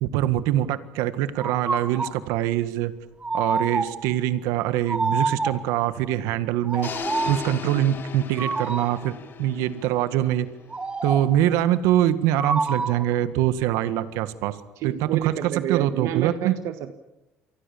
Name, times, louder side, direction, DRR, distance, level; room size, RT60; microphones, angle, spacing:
voice 1, 0.0-2.9 3.3-10.5 11.0-14.6 14.8-16.5, right 12 dB, 90° right, 12 dB, 1.7 m, -24 dB
sound 1, 1.4-2.2 3.2-4.1 4.9-5.8 6.6-7.5 8.4-9.1 10.7-11.4 12.4-13.2, right 3 dB, 20° right, 2.1 m, -28 dB
sound 2, 6.8-10.8, left 7 dB, 45° left, 2.8 m, -37 dB
voice 2, 14.8-16.9, right 11 dB, 70° right, 9 dB, 1.4 m, -29 dB
28.5 x 24.5 x 7.2 m, 0.98 s
cardioid pair, 105°, 5 cm